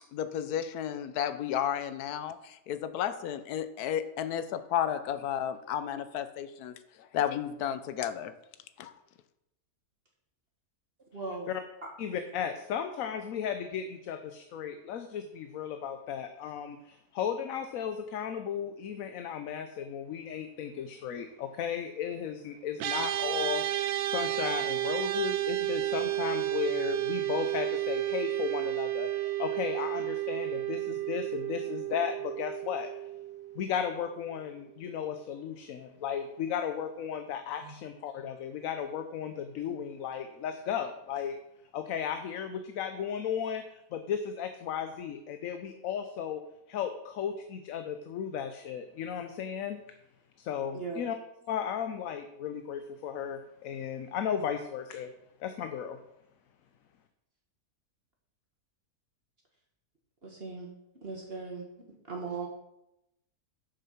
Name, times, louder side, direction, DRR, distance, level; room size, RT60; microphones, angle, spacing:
voice 1, 0.1-8.3 8.8-8.9, left 9 dB, 90° left, 11 dB, 1.2 m, -33 dB
voice 2, 11.1-11.5 37.6-37.7 50.7-51.0 60.2-60.7 61.0-61.6 62.1-62.5, right 4 dB, 40° right, 0 dB, 1.7 m, -38 dB
voice 3, 12.0-32.9 33.6-41.4 41.7-46.4 46.7-49.8 50.4-51.2 51.5-55.1 55.4-56.0, left 8 dB, 70° left, 8 dB, 1.0 m, -35 dB
sound 1, 22.8-34.3, right 14 dB, 90° right, 1.1 m, -32 dB
7.5 x 6.9 x 5.7 m, 0.84 s
omnidirectional pair, 1.6 m